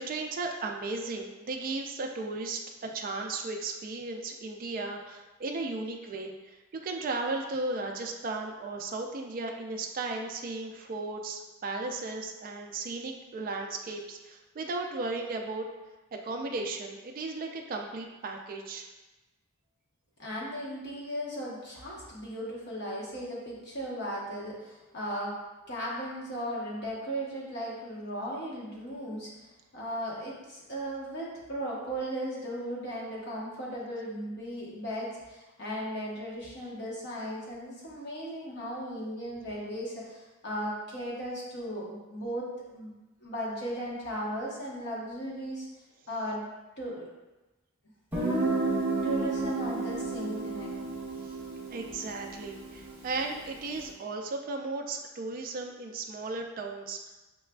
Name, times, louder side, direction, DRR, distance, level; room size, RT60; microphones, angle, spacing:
voice 1, 0.0-15.7 16.1-18.9 51.7-57.2, right 3 dB, 40° right, 2 dB, 0.3 m, -35 dB
voice 2, 20.2-25.3 25.7-29.3 29.7-42.9 43.2-45.7 46.1-46.4 46.8-47.1 49.0-50.8, equal, 50° left, -5 dB, 1.1 m, -36 dB
Guitar, 48.1-53.7, right 2 dB, 10° right, 0.9 m, -32 dB
5.9 x 2.4 x 2.2 m, 1.1 s
head